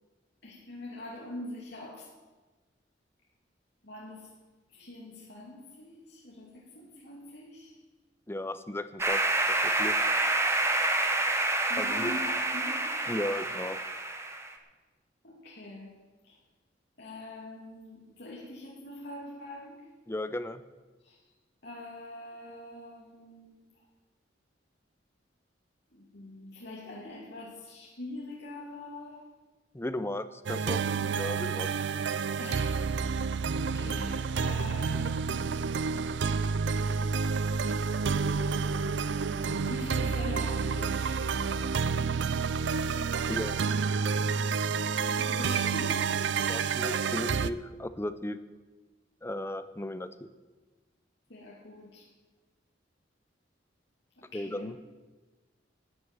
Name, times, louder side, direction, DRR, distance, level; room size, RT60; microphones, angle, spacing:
voice 1, 0.4-2.1 3.8-4.3 4.7-7.8 11.7-12.8 15.2-16.4 17.0-19.9 21.0-21.1 21.6-23.7 25.9-29.3 32.4-32.9 33.6-36.3 37.7-37.8 39.6-41.8 44.8-47.1 51.3-52.1 54.2-54.8, left 1 dB, 65° left, -4 dB, 2.6 m, -44 dB
voice 2, 8.3-9.2 9.5-9.9 11.8-12.1 13.1-13.8 20.1-20.6 29.7-30.8 31.1-31.7 43.3-43.6 46.5-48.4 49.2-50.3 54.3-54.8, left 1 dB, 15° left, 11 dB, 0.7 m, -35 dB
sound 1, 9.0-14.5, right 2 dB, 15° right, 1.3 m, -28 dB
sound 2, 30.5-47.5, right 5 dB, 70° right, 0.5 m, -29 dB
13.0 x 7.7 x 9.5 m, 1.2 s
head